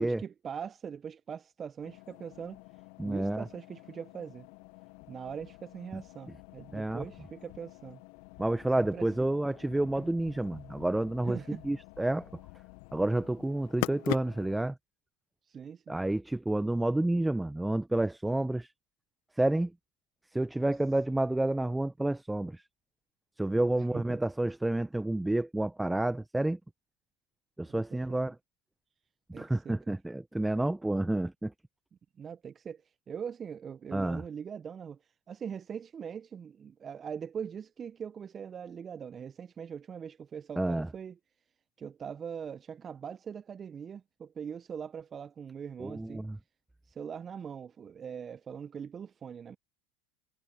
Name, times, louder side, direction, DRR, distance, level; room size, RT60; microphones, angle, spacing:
voice 1, 0.0-2.6 3.0-4.5 5.1-8.0 8.8-9.1 11.2-11.6 15.4-16.0 23.5-24.2 27.7-28.3 29.3-30.0 32.2-41.2 41.8-46.2 46.8-49.6, right 7 dB, 30° right, 1.1 m, -42 dB
sound 1, 1.8-14.7, left 28 dB, 60° left, 1.2 m, -44 dB
voice 2, 3.0-3.4 5.9-6.0 6.7-7.0 8.4-11.4 11.6-12.3 12.9-14.8 15.9-18.7 19.4-19.7 20.3-22.6 23.4-26.6 27.6-28.4 29.3-31.5 33.9-34.2 40.6-40.9 45.8-46.4, right 1 dB, 5° right, 1.0 m, -29 dB
hypercardioid pair, 85°, 0 cm